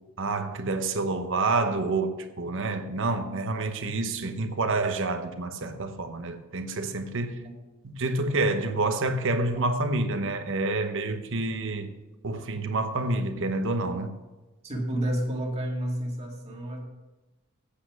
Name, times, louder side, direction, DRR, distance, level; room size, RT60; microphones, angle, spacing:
voice 1, 0.2-7.4 7.8-11.9 12.2-14.1, right 2 dB, 60° right, 8 dB, 1.0 m, -28 dB
voice 2, 14.6-16.9, right 1 dB, 30° right, 0 dB, 2.0 m, -31 dB
8.5 x 7.9 x 6.1 m, 1.1 s
head